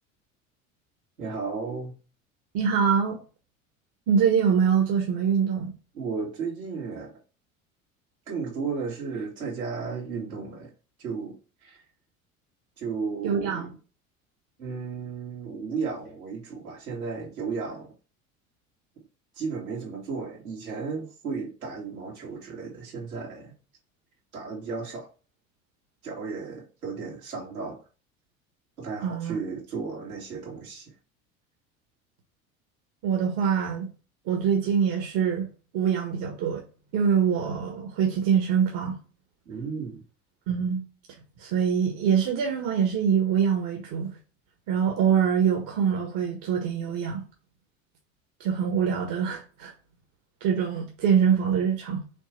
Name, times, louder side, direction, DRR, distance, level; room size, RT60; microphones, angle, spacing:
voice 1, 1.2-2.0 5.9-7.1 8.3-10.7 11.0-11.4 11.6-11.8 12.8-13.8 14.6-17.9 19.3-23.5 24.3-25.1 26.0-27.8 28.8-30.9 39.5-40.0, right 5 dB, 80° right, 2.7 m, -34 dB
voice 2, 2.5-3.2 4.1-5.7 13.2-13.7 29.0-29.4 33.0-33.9 34.3-35.5 35.7-36.6 36.9-39.0 40.5-40.8 41.4-44.1 44.7-47.2 48.4-49.7 50.4-52.0, right 7 dB, 50° right, 1.7 m, -24 dB
6.2 x 3.4 x 4.5 m
figure-of-eight pair, 70°, 42 cm